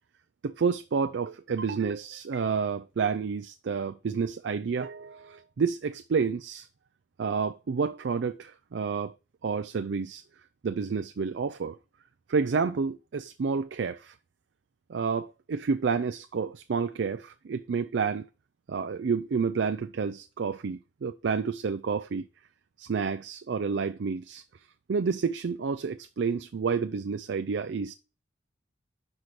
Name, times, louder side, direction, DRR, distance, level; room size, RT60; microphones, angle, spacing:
voice 1, 0.4-6.7 7.2-9.2 9.4-10.2 10.6-11.8 12.3-14.1 14.9-18.3 18.7-22.3 22.8-24.4 24.9-27.9, right 5 dB, 65° right, 0.4 m, -29 dB
5.4 x 4.8 x 5.9 m
head